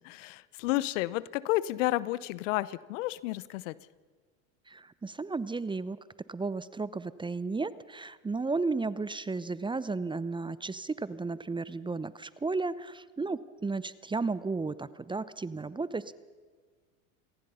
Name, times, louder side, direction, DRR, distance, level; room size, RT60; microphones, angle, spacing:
voice 1, 0.0-3.8, left 17 dB, 70° left, 19 dB, 0.9 m, -31 dB
voice 2, 4.7-6.0 6.3-16.1, right 3 dB, 10° right, 17 dB, 0.7 m, -34 dB
27.5 x 19.0 x 5.6 m, 1.5 s
hypercardioid pair, 80°, 40 cm